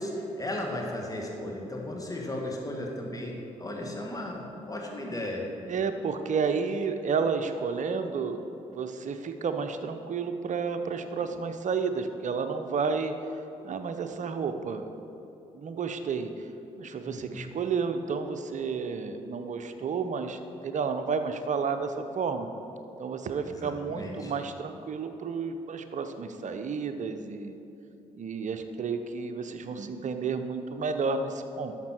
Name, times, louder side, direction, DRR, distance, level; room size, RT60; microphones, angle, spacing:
voice 1, 0.0-3.3 3.6-5.4 17.1-17.5 23.4-24.3, left 1 dB, 20° left, -1 dB, 2.0 m, -35 dB
voice 2, 5.7-8.4 8.7-13.1 13.6-14.9 15.5-16.5 16.8-22.5 23.0-27.6 28.1-31.7, right 5 dB, 45° right, 8 dB, 0.8 m, -31 dB
11.5 x 6.7 x 4.5 m, 2.9 s
hypercardioid pair, 40°, 17 cm